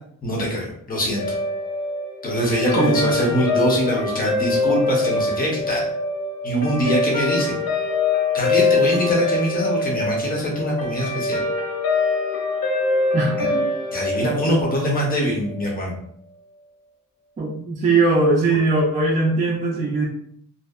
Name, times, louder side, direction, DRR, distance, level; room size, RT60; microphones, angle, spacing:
voice 1, 0.2-1.2 2.2-5.9 6.4-7.5 8.3-11.4 13.4-13.5 13.9-15.9, equal, 25° left, -2 dB, 0.7 m, -23 dB
Guitar, 1.1-15.7, left 3 dB, 80° left, 0.9 m, -24 dB
voice 2, 2.8-3.1 13.1-13.7 17.4-20.1, right 3 dB, 25° right, -4 dB, 0.3 m, -20 dB
2.6 x 2.1 x 2.3 m, 0.65 s
wide cardioid pair, 150°, 33 cm